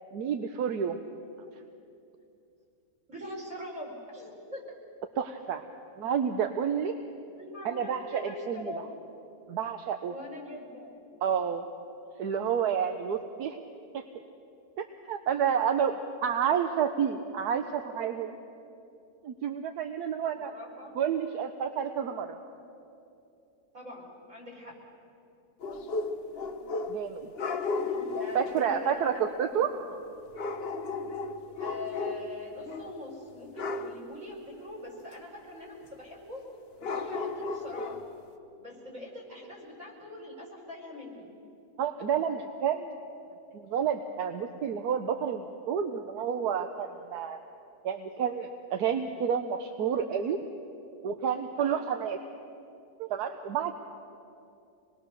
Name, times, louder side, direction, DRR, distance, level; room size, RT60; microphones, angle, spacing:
voice 1, 0.1-1.0 5.2-5.6 6.0-6.9 7.6-8.7 9.5-10.1 11.2-11.6 12.2-13.6 13.9-14.0 15.1-18.4 19.2-20.5 20.9-22.4 26.9-27.3 28.3-29.1 29.4-29.7 41.8-42.9 43.5-47.4 47.8-50.4 51.0-52.2 53.0-53.7, right 8 dB, 85° right, 6 dB, 1.4 m, -30 dB
voice 2, 3.1-4.6 7.4-8.9 10.1-11.1 20.2-21.0 23.7-24.7 27.9-29.8 31.6-36.4 36.8-38.0 38.6-41.3 51.6-51.9, left 1 dB, 55° right, -2 dB, 5.3 m, -43 dB
sound 1, 25.6-27.1 27.4-28.6 30.4-32.4 32.6-33.0 33.6-34.0 36.8-38.1, left 4 dB, 45° left, 0.9 m, -34 dB
26.0 x 20.5 x 6.7 m, 2.7 s
omnidirectional pair, 1.7 m